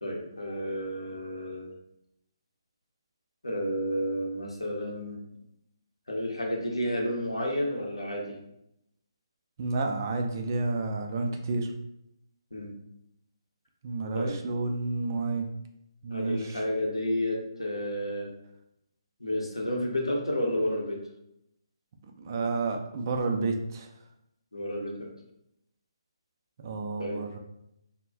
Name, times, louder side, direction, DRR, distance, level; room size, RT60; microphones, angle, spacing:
voice 1, 0.0-1.7 3.4-5.2 6.1-8.4 12.5-12.7 14.1-14.3 16.1-18.3 19.2-21.0 24.5-25.1 27.0-27.2, equal, 80° left, -1 dB, 0.7 m, -31 dB
voice 2, 9.6-11.7 13.8-15.5 16.0-16.6 22.2-23.9 26.6-27.4, right 3 dB, 35° right, 4 dB, 0.4 m, -30 dB
2.3 x 2.1 x 3.4 m, 0.81 s
figure-of-eight pair, 140°, 3 cm